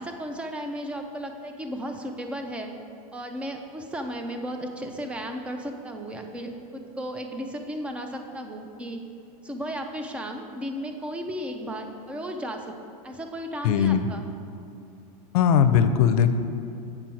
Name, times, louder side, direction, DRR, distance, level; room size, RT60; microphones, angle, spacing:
voice 1, 0.0-2.7 3.1-9.0 9.4-12.7 13.0-14.3, equal, 5° right, 5 dB, 0.4 m, -34 dB
voice 2, 13.6-14.1 15.3-16.3, left 8 dB, 75° left, 10 dB, 0.5 m, -19 dB
7.7 x 4.5 x 6.2 m, 2.6 s
supercardioid pair, 150°, 19 cm